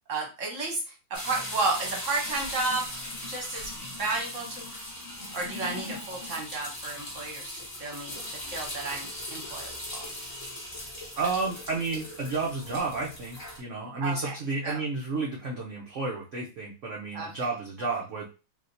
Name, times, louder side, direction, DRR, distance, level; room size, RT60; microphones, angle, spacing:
voice 1, 0.1-2.9 3.3-4.7 5.3-10.1 14.0-14.3 14.6-14.8 17.1-17.5, right 3 dB, 50° right, 0 dB, 1.0 m, -32 dB
sound 1, 1.1-13.6, left 1 dB, 25° left, 1.1 m, -39 dB
voice 2, 11.2-18.3, right 3 dB, 90° right, -2 dB, 0.6 m, -31 dB
3.3 x 2.8 x 2.6 m, 0.31 s
omnidirectional pair, 2.2 m